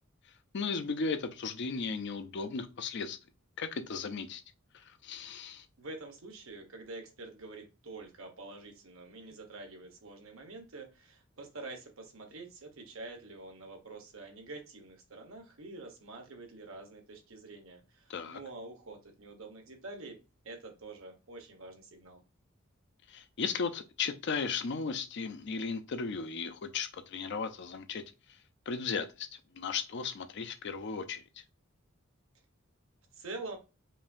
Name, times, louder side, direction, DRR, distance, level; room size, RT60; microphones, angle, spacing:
voice 1, 0.5-3.2 3.6-4.4 4.7-5.7 18.1-18.4 23.1-28.0 28.3-28.4 28.7-29.3 29.5-31.4, left 5 dB, 60° left, 0.6 m, -36 dB
voice 2, 5.8-20.2 20.4-22.2 33.1-33.6, right 3 dB, 90° right, 1.2 m, -46 dB
5.2 x 2.7 x 2.5 m
head